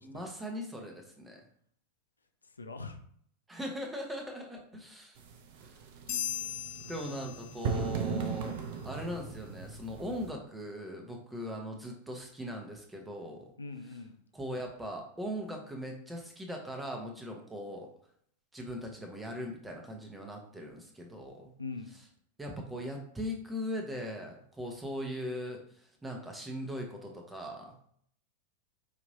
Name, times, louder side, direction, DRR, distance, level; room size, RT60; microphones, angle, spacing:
voice 1, 0.0-1.4 3.5-5.2 6.9-13.5 13.9-14.0 14.3-17.9 18.5-21.5 21.9-22.0 22.4-27.8, equal, 10° right, 1 dB, 0.9 m, -40 dB
voice 2, 2.6-3.0 13.6-14.2 21.6-21.9, left 4 dB, 75° left, 6 dB, 0.4 m, -41 dB
sound 1, 5.2-10.3, right 5 dB, 50° right, 0.5 m, -38 dB
sound 2, 6.1-7.9, left 10 dB, 50° left, 0.9 m, -38 dB
5.1 x 2.9 x 2.6 m, 0.64 s
figure-of-eight pair, 90°, 0 cm